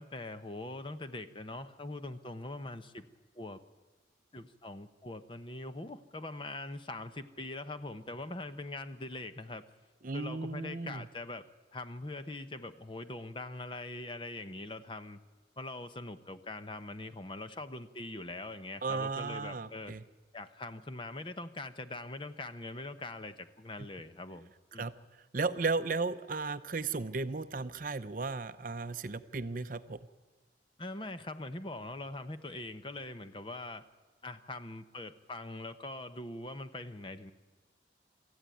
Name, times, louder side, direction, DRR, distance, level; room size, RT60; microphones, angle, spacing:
voice 1, 0.0-3.1 3.4-3.6 4.3-9.6 10.1-11.5 11.7-15.2 15.6-19.9 20.3-24.9 30.8-33.9 34.2-37.3, left 2 dB, 25° left, 10 dB, 0.9 m, -42 dB
voice 2, 10.0-11.1 18.8-20.0 24.7-30.0, right 4 dB, 45° right, 12 dB, 0.7 m, -35 dB
25.0 x 14.5 x 9.2 m, 1.3 s
head